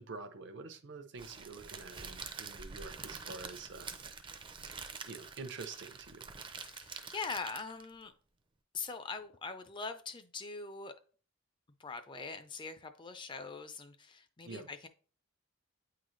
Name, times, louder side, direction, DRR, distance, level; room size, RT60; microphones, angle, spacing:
voice 1, 0.0-3.9 5.1-6.3 14.4-14.7, right 4 dB, 60° right, 8 dB, 0.7 m, -47 dB
Crackle, 1.2-7.9, right 5 dB, 25° right, 0.5 m, -46 dB
voice 2, 6.6-8.1 8.7-10.9 11.8-14.9, left 4 dB, 25° left, 9 dB, 0.4 m, -42 dB
8.7 x 3.9 x 3.1 m, 0.41 s
head